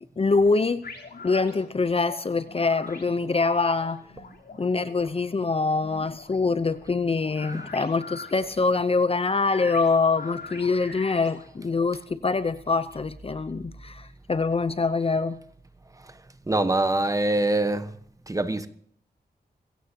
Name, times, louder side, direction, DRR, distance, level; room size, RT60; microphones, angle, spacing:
voice 1, 0.2-0.9 1.2-4.0 4.6-15.4, left 4 dB, 35° left, 0.7 m, -24 dB
sound 1, 0.8-11.9, left 4 dB, 70° left, 3.6 m, -43 dB
voice 2, 16.5-17.9 18.3-18.7, right 2 dB, 20° right, 1.1 m, -24 dB
21.5 x 16.5 x 2.9 m
wide cardioid pair, 115°, 17 cm